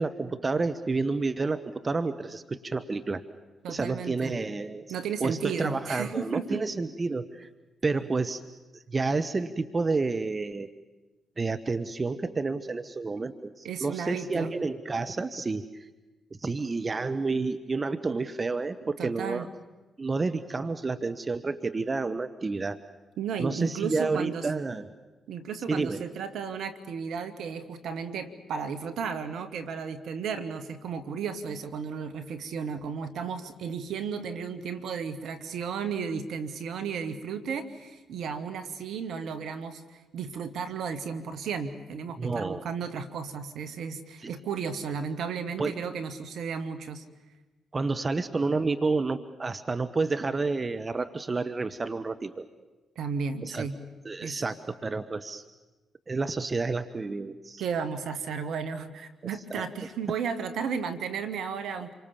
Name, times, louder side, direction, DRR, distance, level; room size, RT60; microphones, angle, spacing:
voice 1, 0.0-3.2 3.7-4.8 5.2-7.5 7.8-8.4 8.7-10.7 11.4-15.9 16.4-19.5 20.0-22.8 23.4-24.9 25.7-26.0 42.2-42.6 44.2-44.3 45.6-45.8 47.7-52.4 53.4-53.7 54.0-55.4 56.1-57.6 59.5-59.6, right 3 dB, 35° right, 10 dB, 1.3 m, -30 dB
voice 2, 3.6-4.4 4.9-6.6 13.2-13.3 13.6-14.6 19.0-19.5 23.2-24.5 25.3-47.0 53.0-53.8 54.2-54.4 57.6-61.9, right 6 dB, 65° right, 11 dB, 2.0 m, -34 dB
28.0 x 24.5 x 7.3 m, 1.1 s
hypercardioid pair, 40°, 0 cm